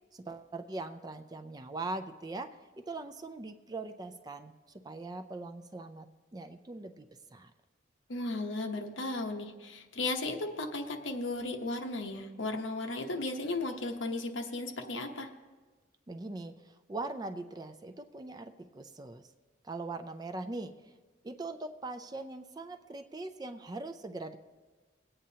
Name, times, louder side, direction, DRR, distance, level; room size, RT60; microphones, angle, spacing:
voice 1, 0.1-4.5 4.8-6.1 6.3-7.1 7.3-7.5 16.1-19.2 19.6-20.9 21.2-24.4, right 2 dB, 20° right, 8 dB, 0.4 m, -41 dB
voice 2, 8.1-15.3, left 2 dB, 90° left, 4 dB, 1.0 m, -35 dB
20.5 x 8.8 x 2.8 m, 1.3 s
head